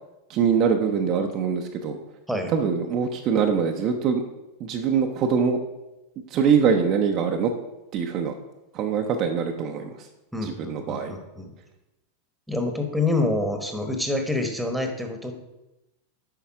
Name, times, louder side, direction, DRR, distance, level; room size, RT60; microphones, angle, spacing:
voice 1, 0.3-2.0 2.5-4.2 4.6-5.6 6.3-7.5 7.9-8.4 8.7-10.1 10.4-11.1, right 6 dB, 35° right, 3 dB, 0.7 m, -23 dB
voice 2, 10.3-11.5 12.5-15.3, left 2 dB, ahead, 5 dB, 1.1 m, -27 dB
8.3 x 5.6 x 4.7 m, 0.97 s
figure-of-eight pair, 90°, 0 cm